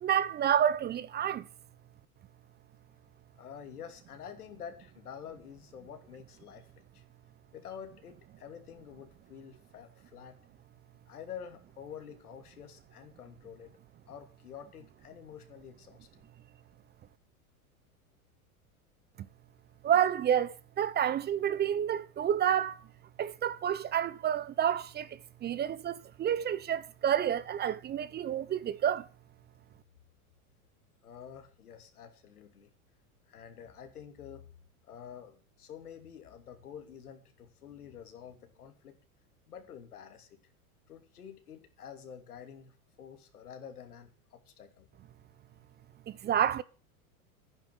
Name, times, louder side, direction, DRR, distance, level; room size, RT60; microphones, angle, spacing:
voice 1, 0.0-1.4 19.8-22.8 23.2-25.1 25.4-29.0 46.1-46.6, right 9 dB, 25° right, 0.6 m, -29 dB
voice 2, 3.3-7.0 7.5-10.4 11.1-13.7 14.1-16.3 31.0-32.7 33.3-34.5 34.9-38.9 39.5-40.4 40.9-44.9, left 8 dB, 90° left, 2.8 m, -48 dB
10.5 x 10.5 x 6.1 m
hypercardioid pair, 105°, 43 cm